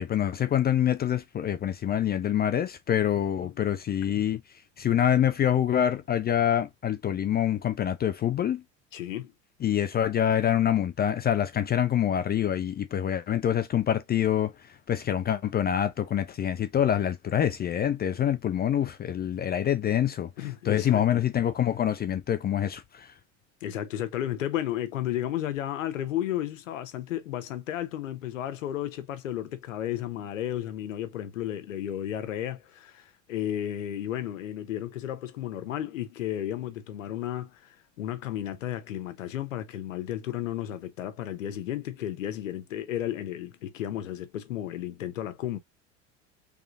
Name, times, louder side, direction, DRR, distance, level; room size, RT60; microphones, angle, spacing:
voice 1, 0.0-4.4 4.8-8.6 9.6-14.5 14.9-20.3 20.7-23.1, left 10 dB, 25° left, 0.5 m, -26 dB
voice 2, 8.9-9.3 20.4-21.0 23.6-37.6 38.0-45.6, left 12 dB, 85° left, 0.9 m, -33 dB
3.8 x 3.4 x 2.4 m
hypercardioid pair, 80°, 38 cm